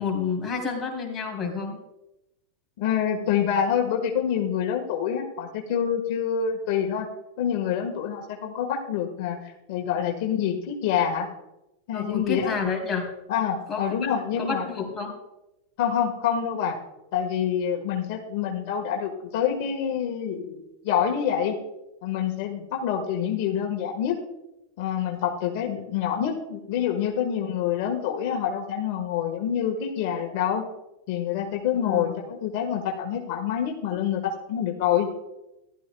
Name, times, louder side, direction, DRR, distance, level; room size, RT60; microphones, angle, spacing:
voice 1, 0.0-1.8 11.9-13.1 13.7-15.1 31.8-32.2, left 5 dB, 25° left, 0 dB, 3.2 m, -30 dB
voice 2, 2.8-7.1 7.4-11.3 11.9-12.5 13.3-14.6 15.8-16.8 17.1-21.6 22.0-24.2 24.8-30.7 31.1-35.1, left 8 dB, 60° left, 1 dB, 1.4 m, -26 dB
14.5 x 12.5 x 2.3 m, 0.92 s
hypercardioid pair, 110°, 0 cm